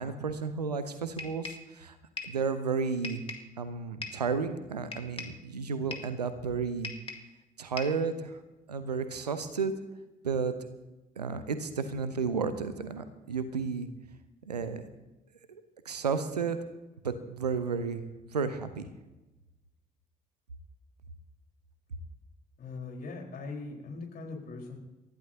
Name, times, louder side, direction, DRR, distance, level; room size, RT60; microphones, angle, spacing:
voice 1, 0.0-2.0 2.2-3.2 3.6-6.9 7.6-8.4 8.7-9.7 10.2-10.6 11.2-13.9 14.5-14.8 15.5-16.6 17.0-18.0 18.3-18.9, right 5 dB, 85° right, 11 dB, 0.9 m, -32 dB
sound 1, 1.2-1.7 2.2-2.4 3.0-3.5 4.0-4.3 4.9-5.4 5.9-6.2 6.8-7.3 7.8-8.1, left 3 dB, 30° left, 2.0 m, -40 dB
voice 2, 22.6-24.8, left 3 dB, 50° left, 1 dB, 4.3 m, -40 dB
28.5 x 14.5 x 2.8 m, 1.1 s
figure-of-eight pair, 45°, 20 cm